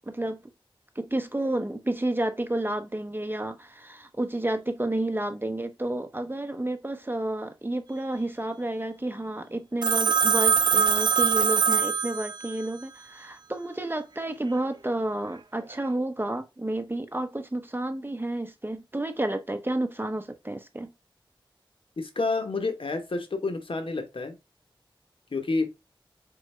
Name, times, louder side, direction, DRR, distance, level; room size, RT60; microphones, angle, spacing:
voice 1, 0.1-0.4 1.0-20.9, right 1 dB, 25° right, 0.7 m, -30 dB
Telephone, 9.8-12.6, right 6 dB, 55° right, 0.5 m, -23 dB
voice 2, 22.0-24.4 25.3-25.7, left 3 dB, 75° left, 1.0 m, -29 dB
4.3 x 3.8 x 3.2 m
wide cardioid pair, 65°, 9 cm